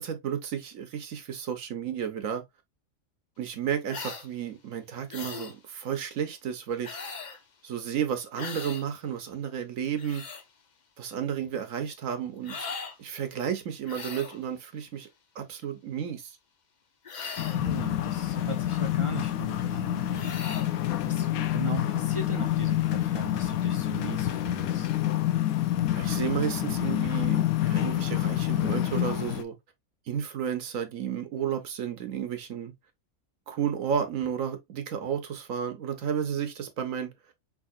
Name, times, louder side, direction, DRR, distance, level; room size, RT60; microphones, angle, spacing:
voice 1, 0.0-2.4 3.4-7.0 7.6-10.2 11.0-12.7 13.0-15.1 15.4-16.3 25.9-29.5 30.1-32.7 33.5-37.1, right 8 dB, 70° right, 1.2 m, -32 dB
sound 1, 3.9-4.3 5.1-5.5 6.8-7.4 8.4-8.8 9.8-10.4 12.4-13.0 13.8-14.4 17.0-17.7 20.1-20.7, left 5 dB, 45° left, 0.6 m, -39 dB
sound 2, 17.4-29.4, left 13 dB, 80° left, 1.0 m, -27 dB
voice 2, 17.5-25.0, right 3 dB, 35° right, 0.5 m, -39 dB
5.2 x 3.6 x 2.4 m
omnidirectional pair, 1.5 m